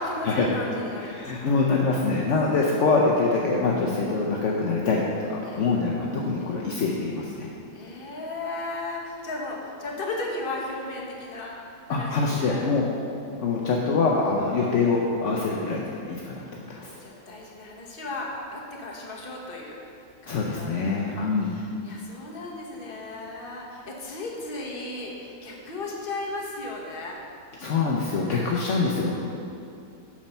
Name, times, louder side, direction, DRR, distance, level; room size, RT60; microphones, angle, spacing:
voice 1, 0.0-1.6 5.4-5.7 7.7-11.6 11.9-12.7 16.7-19.8 20.2-27.2, left 2 dB, 35° left, -2 dB, 1.1 m, -35 dB
voice 2, 1.1-5.0 5.3-7.5 11.9-12.9 13.4-16.5 16.8-17.0 20.3-21.5 27.6-29.1, left 4 dB, 60° left, -2 dB, 0.8 m, -24 dB
7.4 x 6.3 x 5.5 m, 2.5 s
omnidirectional pair, 2.1 m